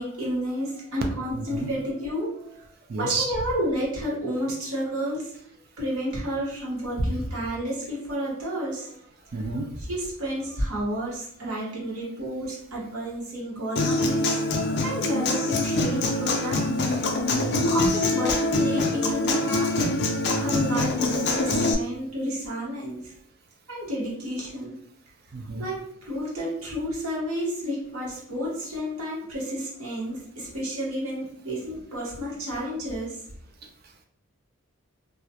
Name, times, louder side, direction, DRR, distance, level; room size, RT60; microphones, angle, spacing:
voice 1, 0.0-2.6 2.9-5.3 5.8-8.9 9.9-17.0 17.7-19.8 20.4-23.1 23.7-24.8 25.6-33.2, equal, 85° right, -5 dB, 1.0 m, -31 dB
voice 2, 1.3-1.7 2.9-3.3 7.0-7.1 9.3-9.7 17.3-17.7 20.3-20.7 25.3-25.7, right 2 dB, 45° right, 4 dB, 0.3 m, -30 dB
Human voice / Acoustic guitar, 13.8-21.7, left 2 dB, 50° left, 0.3 m, -24 dB
2.3 x 2.1 x 2.7 m, 0.68 s
head